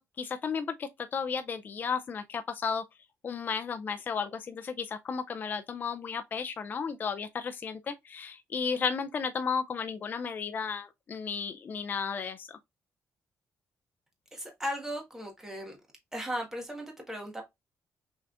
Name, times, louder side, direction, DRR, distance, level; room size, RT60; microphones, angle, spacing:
voice 1, 0.0-2.8 3.2-12.6, left 6 dB, 30° left, 0.4 m, -34 dB
voice 2, 14.3-15.8 16.1-17.4, equal, 10° right, 1.4 m, -36 dB
6.2 x 3.4 x 2.4 m
cardioid pair, 170°, 6 cm